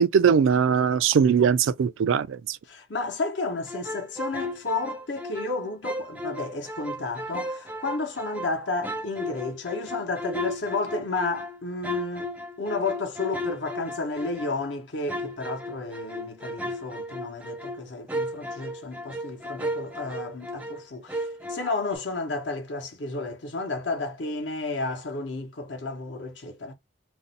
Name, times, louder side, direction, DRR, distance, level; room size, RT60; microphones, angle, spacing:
voice 1, 0.0-2.6, right 7 dB, 80° right, 0.3 m, -21 dB
voice 2, 2.7-12.3 12.6-26.7, left 3 dB, 65° left, 0.8 m, -32 dB
sound 1, 3.7-5.5 5.8-8.6 8.8-14.7 15.1-20.8 21.1-22.0, equal, 10° right, 0.4 m, -34 dB
2.6 x 2.0 x 3.8 m
head